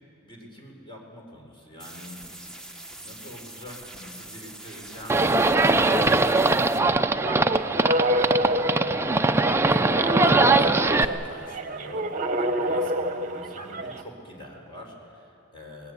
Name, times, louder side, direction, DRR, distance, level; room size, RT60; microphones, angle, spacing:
voice 1, 0.2-2.5 3.0-15.9, equal, 25° left, 0 dB, 4.5 m, -44 dB
sound 1, 1.8-6.8, right 1 dB, 5° left, 1.4 m, -43 dB
Livestock farm animals working animals, 5.1-11.0, right 2 dB, 10° right, 0.5 m, -21 dB
sound 2, 7.2-14.0, right 1 dB, 40° right, 1.0 m, -28 dB
25.0 x 20.0 x 8.2 m, 2.6 s
head